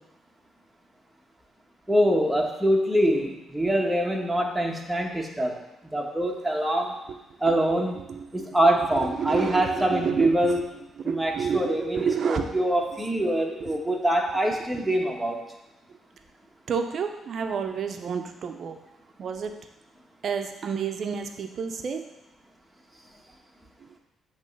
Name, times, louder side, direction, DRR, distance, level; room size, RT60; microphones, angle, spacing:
voice 1, 1.9-5.6 5.9-6.9 7.4-8.0 8.3-10.6 11.0-15.4, right 1 dB, 5° right, -1 dB, 1.3 m, -24 dB
voice 2, 8.0-8.6 8.9-10.6 11.0-12.4 13.6-13.7 16.7-18.8 19.2-19.5 20.2-22.0, right 6 dB, 55° right, 5 dB, 0.7 m, -30 dB
8.4 x 3.2 x 5.4 m, 0.92 s
cardioid pair, 90°, 0 cm